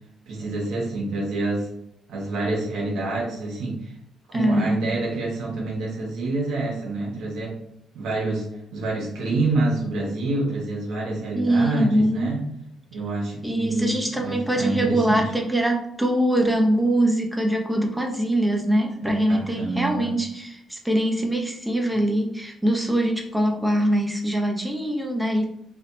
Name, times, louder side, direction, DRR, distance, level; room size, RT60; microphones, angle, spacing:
voice 1, 0.3-1.7 2.1-3.9 4.3-7.6 7.9-12.4 12.9-15.3 19.2-20.2, right 2 dB, 85° right, -3 dB, 1.2 m, -27 dB
voice 2, 4.3-4.8 11.3-12.3 13.4-25.4, right 1 dB, 5° right, 2 dB, 0.8 m, -23 dB
3.4 x 2.3 x 3.9 m, 0.74 s
cardioid pair, 90°, 0 cm